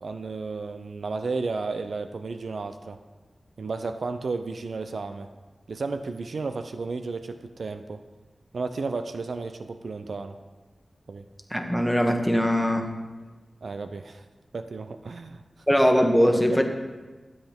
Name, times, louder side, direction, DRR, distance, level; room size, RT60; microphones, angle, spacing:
voice 1, 0.0-3.0 3.6-5.3 5.7-8.0 8.5-10.4 11.1-11.2 13.6-14.2 14.5-15.4 16.5-16.6, right 4 dB, 75° right, 8 dB, 0.4 m, -33 dB
voice 2, 11.5-12.9 15.7-16.6, equal, ahead, 4 dB, 1.3 m, -21 dB
12.5 x 7.9 x 3.6 m, 1.2 s
cardioid pair, 40°, 0 cm